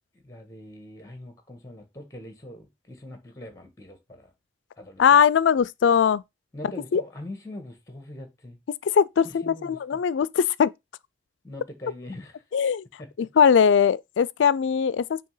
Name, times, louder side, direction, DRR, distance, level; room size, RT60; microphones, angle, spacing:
voice 1, 0.1-4.3 4.8-5.2 6.5-8.6 9.2-10.0 11.4-12.4 13.0-13.3, left 1 dB, 15° left, 1.3 m, -42 dB
voice 2, 5.0-6.2 6.9-7.0 8.9-10.7 12.5-12.8 13.2-15.3, left 7 dB, 85° left, 0.4 m, -20 dB
6.6 x 2.8 x 5.5 m
head